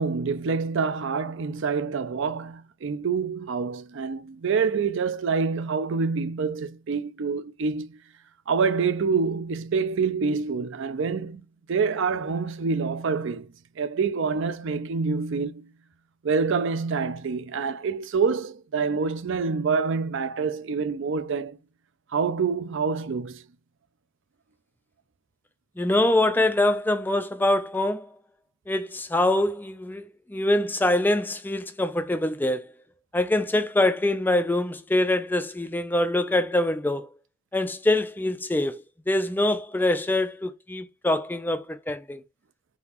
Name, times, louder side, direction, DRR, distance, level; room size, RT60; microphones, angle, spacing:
voice 1, 0.0-8.0 8.5-11.4 11.7-15.7 16.2-21.6 22.1-23.4, right 5 dB, 60° right, 0.5 m, -26 dB
voice 2, 25.8-28.1 28.7-32.7 33.1-37.1 37.5-42.2, left 1 dB, 10° left, 0.3 m, -24 dB
4.0 x 3.8 x 2.9 m
head